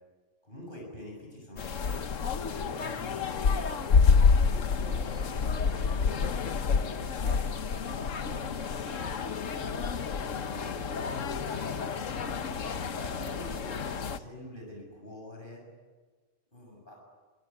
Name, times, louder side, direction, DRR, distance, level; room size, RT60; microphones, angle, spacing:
voice 1, 0.4-6.2 6.7-15.6 16.5-17.0, left 1 dB, 40° left, 1 dB, 7.0 m, -46 dB
sound 1, 1.6-14.2, left 5 dB, 85° left, 1.5 m, -28 dB
26.0 x 24.0 x 9.6 m, 1.4 s
omnidirectional pair, 1.3 m